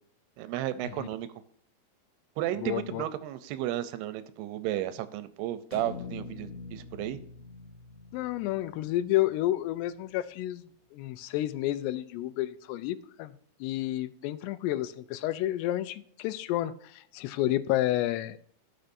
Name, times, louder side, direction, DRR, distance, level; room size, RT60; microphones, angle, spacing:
voice 1, 0.4-1.3 2.4-7.2, right 13 dB, 85° right, 13 dB, 2.6 m, -33 dB
voice 2, 2.6-3.0 8.1-10.7 10.9-13.3 13.6-18.4, left 14 dB, 90° left, 13 dB, 2.7 m, -30 dB
sound 1, 5.7-9.9, left 4 dB, 50° left, 2.6 m, -45 dB
17.0 x 6.5 x 2.6 m, 0.62 s
omnidirectional pair, 4.7 m